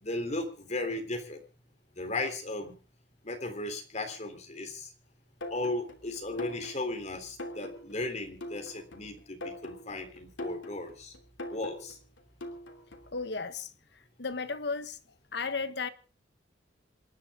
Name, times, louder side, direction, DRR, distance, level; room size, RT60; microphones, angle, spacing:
voice 1, 0.0-1.4 2.0-2.7 3.2-4.9 5.5-11.1 11.5-12.0, left 2 dB, 35° left, 3.5 m, -36 dB
sound 1, 5.4-13.2, left 1 dB, 80° left, 3.0 m, -43 dB
voice 2, 13.1-13.7 14.2-15.0 15.3-15.9, left 4 dB, 60° left, 1.2 m, -34 dB
27.0 x 11.0 x 3.7 m
head